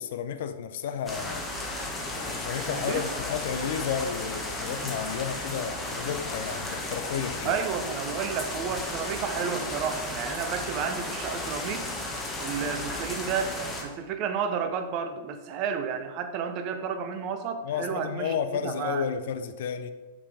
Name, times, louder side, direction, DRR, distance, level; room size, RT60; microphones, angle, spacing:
voice 1, 0.0-1.4 2.2-7.6 17.6-19.9, left 7 dB, 55° left, 0.5 m, -32 dB
sound 1, 1.1-13.8, left 2 dB, 15° left, 1.2 m, -34 dB
voice 2, 2.7-3.2 7.4-11.9 12.4-19.1, right 7 dB, 40° right, 0.7 m, -31 dB
5.7 x 4.8 x 4.9 m
figure-of-eight pair, 100°, 0 cm